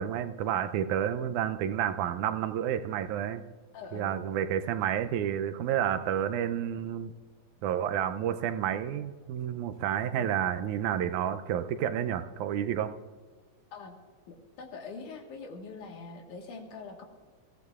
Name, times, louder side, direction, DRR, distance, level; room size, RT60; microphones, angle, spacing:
voice 1, 0.0-3.4 3.9-7.1 7.6-12.9, right 10 dB, 80° right, 9 dB, 2.0 m, -30 dB
voice 2, 3.7-4.2 10.0-10.3 13.7-14.0 14.3-17.0, left 4 dB, 80° left, 2 dB, 3.0 m, -44 dB
21.5 x 15.5 x 2.4 m, 1.5 s
omnidirectional pair, 3.5 m